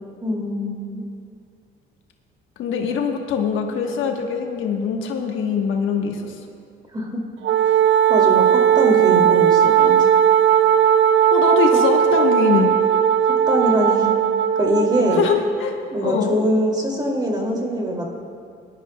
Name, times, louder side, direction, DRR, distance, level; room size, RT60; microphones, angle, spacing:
voice 1, 0.2-1.0 6.9-7.2 8.1-10.1 13.2-14.1 14.6-15.3 15.9-18.1, equal, 20° right, -1 dB, 2.4 m, -23 dB
voice 2, 2.6-6.3 11.3-12.8 15.1-16.4, left 6 dB, 80° left, 3 dB, 1.2 m, -23 dB
Wind instrument woodwind instrument, 7.4-15.4, right 9 dB, 70° right, 0.5 m, -17 dB
20.0 x 11.5 x 2.2 m, 2.4 s
cardioid pair, 90°, 20 cm